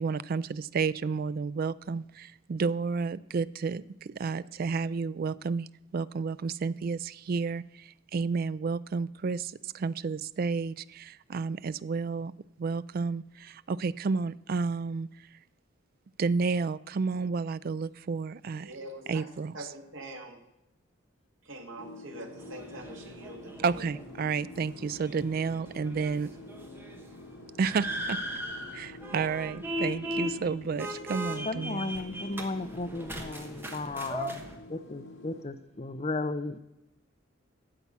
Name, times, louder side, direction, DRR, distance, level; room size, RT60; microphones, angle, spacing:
voice 1, 0.0-12.3 12.6-15.1 16.2-18.7 19.1-19.7 23.6-26.3 27.6-28.2 28.7-31.9, right 4 dB, 50° right, 18 dB, 0.4 m, -31 dB
voice 2, 18.6-19.3 19.5-20.4 21.4-24.0, right 1 dB, 85° right, 3 dB, 2.1 m, -44 dB
sound 1, 21.8-35.4, left 1 dB, 65° left, 2.2 m, -48 dB
sound 2, 22.4-34.6, equal, 10° right, 1.3 m, -39 dB
voice 3, 31.4-36.6, left 2 dB, 35° left, 10 dB, 0.7 m, -35 dB
13.0 x 8.3 x 5.6 m, 0.89 s
head